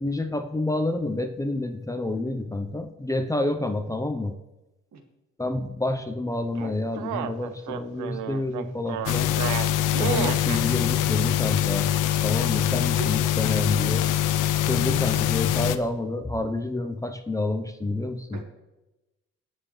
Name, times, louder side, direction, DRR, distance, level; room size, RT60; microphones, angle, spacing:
voice 1, 0.0-4.3 5.4-9.3 10.0-11.9 12.2-14.1 14.6-18.4, left 2 dB, 10° left, 7 dB, 0.8 m, -28 dB
sound 1, 6.6-10.6, right 11 dB, 90° right, 0.7 m, -32 dB
sound 2, 9.1-15.8, left 11 dB, 90° left, 0.7 m, -24 dB
voice 2, 12.7-13.1 18.3-18.4, right 4 dB, 60° right, 3 dB, 2.2 m, -38 dB
20.0 x 7.4 x 3.3 m, 1.0 s
cardioid pair, 90°, 30 cm